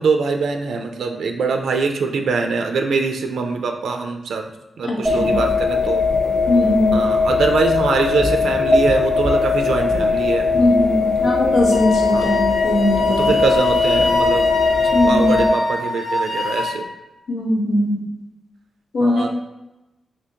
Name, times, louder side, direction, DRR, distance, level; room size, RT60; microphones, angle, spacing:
voice 1, 0.0-4.4 4.8-6.0 6.9-10.5 12.1-12.3 13.0-14.5 15.1-16.8 19.0-19.3, right 4 dB, 90° right, 4 dB, 0.4 m, -22 dB
voice 2, 4.8-5.4 6.5-7.1 10.5-13.3 14.9-15.5 17.3-18.0 18.9-19.3, left 1 dB, 85° left, -2 dB, 0.9 m, -20 dB
sound 1, 5.1-15.5, left 4 dB, 5° left, 0.4 m, -19 dB
Wind instrument woodwind instrument, 11.7-16.8, left 2 dB, 55° left, 0.6 m, -25 dB
3.5 x 2.8 x 2.8 m, 0.98 s
wide cardioid pair, 120°, 0 cm